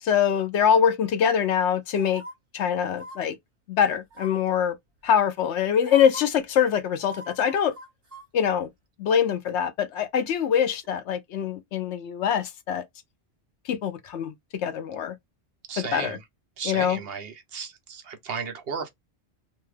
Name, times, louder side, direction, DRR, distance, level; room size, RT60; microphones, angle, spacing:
voice 1, 0.0-2.2 2.5-3.4 3.7-4.7 5.0-7.7 8.3-8.7 9.0-12.8 13.7-14.3 14.6-15.1 15.8-16.2 16.6-17.0, left 8 dB, 80° left, 0.9 m, -24 dB
sound 1, 2.0-2.3 2.9-3.2 4.1-4.5 5.4-5.5 5.8-6.2 7.0-8.3 8.6-8.7, equal, 35° right, 1.4 m, -42 dB
voice 2, 15.7-16.2 16.6-18.9, right 6 dB, 60° right, 0.9 m, -34 dB
2.7 x 2.3 x 3.2 m
omnidirectional pair, 1.2 m